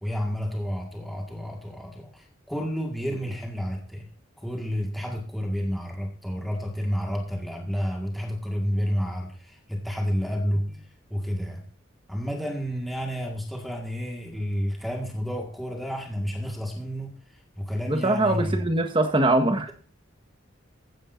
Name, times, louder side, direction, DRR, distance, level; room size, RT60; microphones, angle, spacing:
voice 1, 0.0-4.1 4.4-11.6 12.1-18.6, equal, ahead, 1.9 m, -30 dB
voice 2, 17.9-19.7, right 2 dB, 25° right, 1.5 m, -22 dB
15.0 x 10.5 x 2.7 m
head